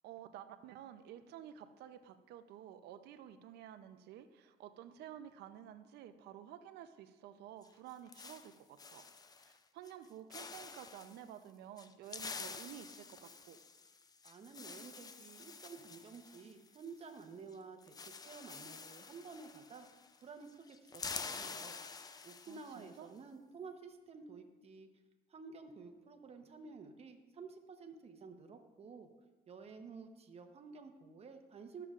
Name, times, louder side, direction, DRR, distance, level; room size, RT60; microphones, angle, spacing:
voice 1, 0.0-9.0 9.3-13.6 22.5-23.1, right 10 dB, 75° right, 10 dB, 0.6 m, -52 dB
sound 1, 7.6-9.6 9.9-10.1 10.3-11.2 11.8-17.2 17.5-17.6 17.8-20.2 20.5-22.9, left 4 dB, 20° left, 0.4 m, -48 dB
voice 2, 14.2-19.9 20.2-21.8 22.2-24.9 25.3-29.1 29.5-31.9, right 4 dB, 35° right, 5 dB, 0.9 m, -52 dB
13.0 x 6.7 x 2.5 m, 1.2 s
cardioid pair, 110°, 17 cm